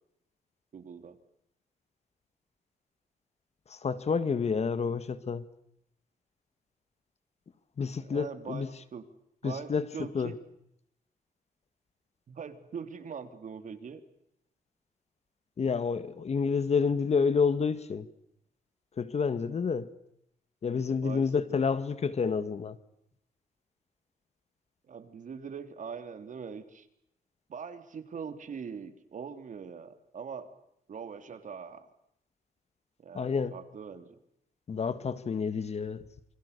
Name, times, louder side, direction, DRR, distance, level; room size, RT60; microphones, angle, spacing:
voice 1, 0.7-1.2 8.0-9.1 9.4-10.4 12.3-14.0 21.0-21.7 24.9-26.9 27.5-30.5 30.9-31.9 33.0-34.1, right 6 dB, 55° right, 3.3 m, -42 dB
voice 2, 3.7-5.4 7.8-8.7 9.4-9.9 10.1-10.3 15.6-18.1 19.0-19.9 20.6-22.8 33.1-33.5 34.7-36.0, left 5 dB, 45° left, 1.8 m, -29 dB
28.5 x 25.0 x 6.8 m
cardioid pair, 110°, 15 cm